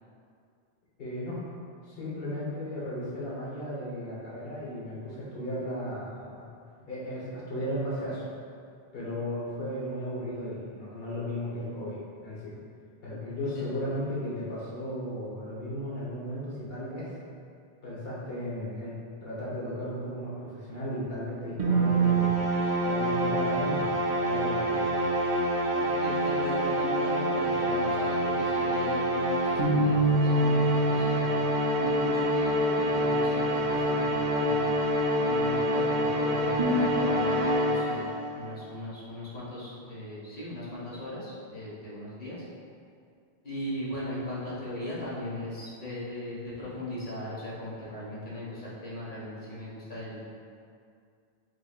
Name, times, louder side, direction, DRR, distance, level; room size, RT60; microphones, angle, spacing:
voice 1, 1.0-1.4 1.9-6.4 6.9-8.2 8.9-12.5 13.0-17.1 17.8-18.9 19.2-23.9 24.2-24.9, equal, 70° left, -7 dB, 1.3 m, -35 dB
sound 1, 21.6-38.3, right 1 dB, 40° right, 0.5 m, -26 dB
voice 2, 25.7-31.4 31.8-34.7 35.2-37.3 37.6-38.0 38.3-42.4 43.4-50.2, left 1 dB, 50° left, -9 dB, 1.5 m, -38 dB
7.7 x 2.9 x 2.4 m, 2.3 s
omnidirectional pair, 1.0 m